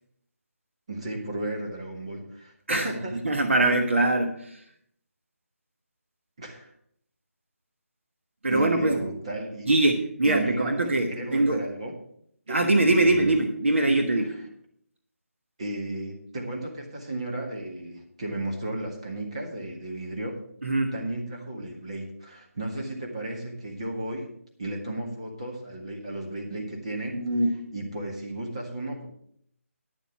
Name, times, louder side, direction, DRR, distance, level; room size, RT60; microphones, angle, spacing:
voice 1, 0.9-3.4 6.4-6.7 8.5-9.7 10.2-11.9 12.5-12.6 12.9-13.4 13.8-14.4 15.6-20.4 20.9-24.3 24.6-27.2 27.7-29.1, right 1 dB, 25° right, 0 dB, 1.7 m, -34 dB
voice 2, 3.2-4.6 8.4-9.0 9.7-11.6 12.5-14.3 20.6-20.9 27.1-27.6, right 2 dB, 55° right, 5 dB, 1.2 m, -23 dB
11.0 x 7.3 x 6.0 m, 0.67 s
figure-of-eight pair, 180°, 8 cm